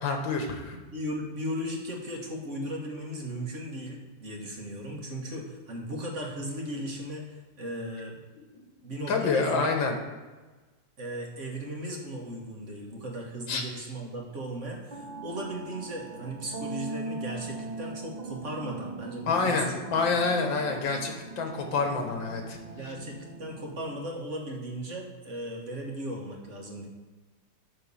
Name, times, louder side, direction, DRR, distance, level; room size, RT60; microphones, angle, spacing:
voice 1, 0.0-0.8 9.1-10.0 13.5-13.6 19.3-22.6, left 4 dB, 75° left, 3 dB, 2.0 m, -27 dB
voice 2, 0.9-8.2 8.8-9.8 11.0-19.6 22.8-26.9, right 1 dB, 40° right, 0 dB, 1.7 m, -37 dB
sound 1, 14.9-24.0, right 3 dB, 85° right, 0.4 m, -40 dB
11.0 x 3.8 x 7.0 m, 1.3 s
omnidirectional pair, 2.0 m